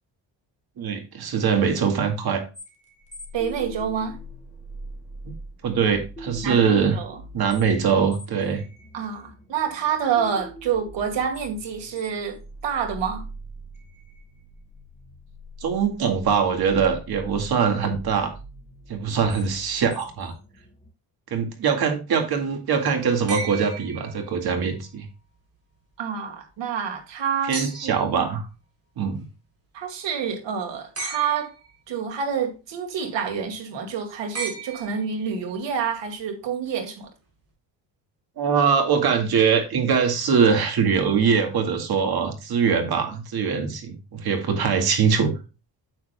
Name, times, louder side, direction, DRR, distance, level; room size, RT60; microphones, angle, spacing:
voice 1, 0.8-2.4 5.2-5.3 5.6-7.0 7.3-8.6 15.6-18.3 18.9-20.3 21.3-25.1 27.5-28.4 29.0-29.2 38.4-45.3, right 6 dB, 55° right, 2.1 m, -22 dB
sound 1, 2.5-20.9, right 1 dB, 15° left, 2.3 m, -42 dB
voice 2, 3.3-4.2 6.4-7.2 8.9-12.4 12.6-13.2 26.0-28.1 29.7-31.5 31.9-37.1, right 7 dB, 75° right, 2.3 m, -28 dB
sound 2, 23.3-24.7 27.5-28.1 30.9-31.7 34.3-35.4 37.0-37.1, right 3 dB, 30° right, 4.2 m, -35 dB
9.5 x 7.4 x 2.2 m
cardioid pair, 155°, 44 cm